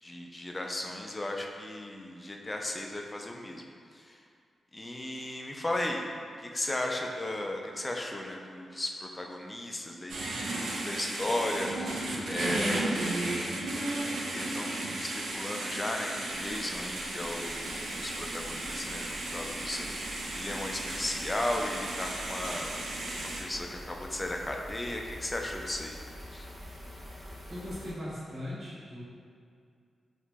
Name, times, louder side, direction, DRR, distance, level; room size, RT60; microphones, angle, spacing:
voice 1, 0.0-3.6 3.9-4.2 4.7-6.0 6.4-10.2 10.8-12.0 12.3-13.0 13.6-22.7 23.2-26.0 26.3-26.5, left 1 dB, 25° left, 1 dB, 0.4 m, -36 dB
sound 1, 10.1-23.4, right 2 dB, 80° right, 0.4 m, -34 dB
sound 2, 16.3-27.9, equal, 25° right, 1.1 m, -46 dB
voice 2, 27.5-29.0, left 1 dB, 45° right, -8 dB, 1.2 m, -39 dB
2.9 x 2.5 x 3.4 m, 2.3 s
cardioid pair, 70°, 0 cm